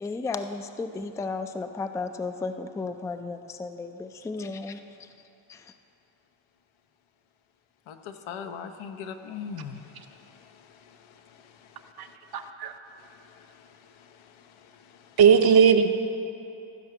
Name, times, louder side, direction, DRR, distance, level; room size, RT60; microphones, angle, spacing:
voice 1, 0.0-5.1 5.5-5.7, left 3 dB, 10° left, 8 dB, 0.3 m, -34 dB
voice 2, 7.9-12.5 13.0-15.3, left 7 dB, 85° left, 7 dB, 0.8 m, -43 dB
voice 3, 12.3-12.7 15.2-15.9, right 7 dB, 50° right, 7 dB, 0.8 m, -18 dB
14.5 x 4.9 x 6.6 m, 2.8 s
cardioid pair, 90°, 47 cm